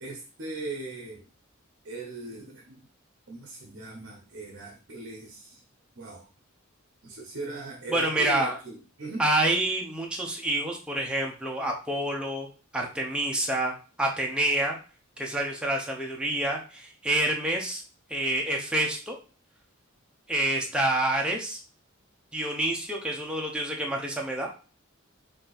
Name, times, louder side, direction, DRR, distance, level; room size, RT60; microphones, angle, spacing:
voice 1, 0.0-1.2 1.8-2.7 3.3-5.6 6.0-6.2 7.0-9.2, right 2 dB, 55° right, 0 dB, 0.8 m, -39 dB
voice 2, 7.9-8.6 9.2-12.5 12.7-14.8 15.2-17.8 18.1-19.2 20.3-21.6 22.3-24.5, right 1 dB, 5° right, -1 dB, 0.8 m, -28 dB
4.5 x 2.7 x 4.0 m, 0.36 s
head